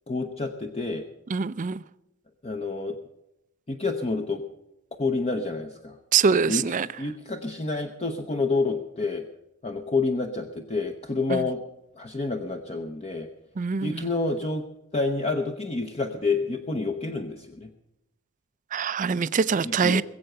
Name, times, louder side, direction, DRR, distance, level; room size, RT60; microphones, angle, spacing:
voice 1, 0.1-1.0 2.4-3.0 3.7-4.4 5.0-6.0 6.5-6.6 7.0-9.3 9.6-11.6 12.0-13.3 13.8-14.6 14.9-17.7 19.6-20.0, left 3 dB, 30° left, 5 dB, 0.7 m, -28 dB
voice 2, 1.3-1.8 6.1-6.9 11.3-11.4 13.6-14.1 18.7-20.0, right 5 dB, 35° right, 17 dB, 0.4 m, -24 dB
21.0 x 7.8 x 6.6 m, 0.91 s
head